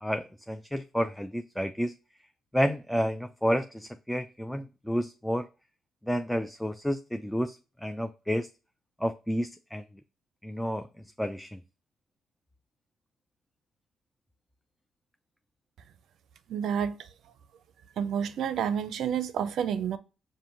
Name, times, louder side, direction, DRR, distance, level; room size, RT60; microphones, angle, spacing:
voice 1, 0.0-1.9 2.5-5.5 6.0-7.6 7.8-8.5 9.0-9.8 10.4-10.9 11.2-11.6, equal, 5° left, 0.3 m, -30 dB
voice 2, 16.5-17.0 18.0-20.0, right 8 dB, 70° right, 0.5 m, -29 dB
5.5 x 2.5 x 2.6 m
cardioid pair, 80°, 0 cm